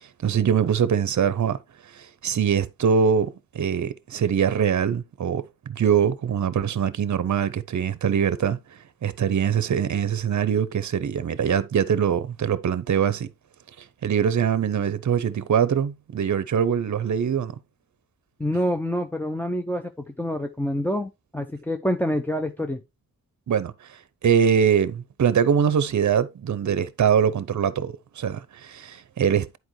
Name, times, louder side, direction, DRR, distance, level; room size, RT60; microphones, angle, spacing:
voice 1, 0.2-1.6 1.9-8.6 9.0-13.3 14.0-17.5 23.5-23.7 24.2-29.6, right 7 dB, 55° right, 0.7 m, -23 dB
voice 2, 18.4-22.8, equal, 5° left, 0.6 m, -27 dB
10.5 x 4.7 x 3.1 m
wide cardioid pair, 120°, 36 cm